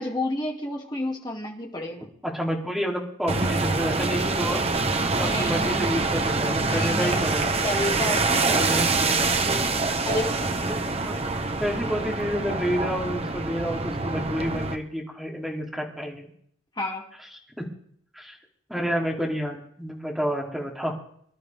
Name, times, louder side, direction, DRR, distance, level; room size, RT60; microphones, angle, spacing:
voice 1, 0.0-2.1 5.2-6.3 6.6-7.4 7.6-8.8 10.0-10.8 16.8-17.0, left 1 dB, 20° left, 0 dB, 2.5 m, -31 dB
voice 2, 2.2-4.6 5.2-7.6 8.5-9.2 10.6-10.7 11.0-11.2 11.6-16.3 17.6-17.7 18.1-18.4 18.7-21.0, equal, ahead, -2 dB, 2.8 m, -29 dB
sound 1, 3.3-14.8, right 3 dB, 30° right, 1.0 m, -25 dB
24.5 x 12.0 x 3.5 m, 0.65 s
head